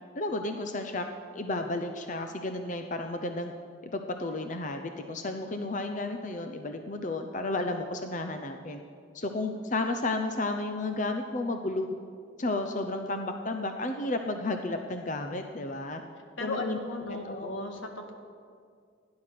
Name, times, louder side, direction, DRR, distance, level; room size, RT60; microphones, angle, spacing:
voice 1, 0.1-1.1 1.3-3.5 3.9-8.8 9.1-11.9 12.4-16.0 16.4-16.8 17.1-17.5, left 2 dB, 40° left, 6 dB, 0.7 m, -32 dB
voice 2, 16.4-18.1, left 2 dB, 85° left, 4 dB, 1.8 m, -36 dB
16.5 x 10.5 x 6.0 m, 2.2 s
head